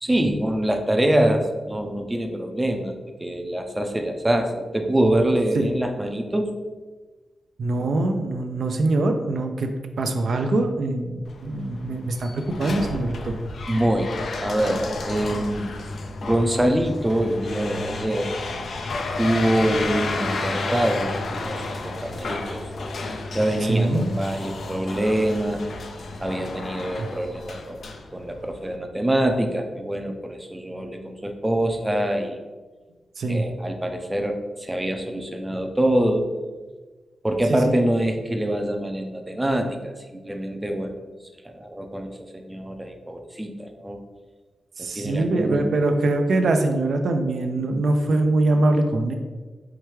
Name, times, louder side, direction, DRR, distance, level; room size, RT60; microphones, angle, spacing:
voice 1, 0.0-6.5 13.7-15.7 16.2-18.4 19.2-22.7 23.3-25.6 26.2-27.8 28.1-32.4 33.3-36.2 37.2-40.9 41.4-44.0 44.8-45.6, right 1 dB, 15° right, 4 dB, 0.5 m, -25 dB
voice 2, 7.6-9.7 10.0-13.4 23.6-24.0 27.0-27.1 33.2-33.5 37.5-37.6 44.8-49.1, right 2 dB, 70° right, 5 dB, 0.4 m, -23 dB
sound 1, 11.2-28.8, left 2 dB, 70° left, 0.4 m, -32 dB
4.7 x 3.2 x 3.1 m, 1.3 s
wide cardioid pair, 90°, 0 cm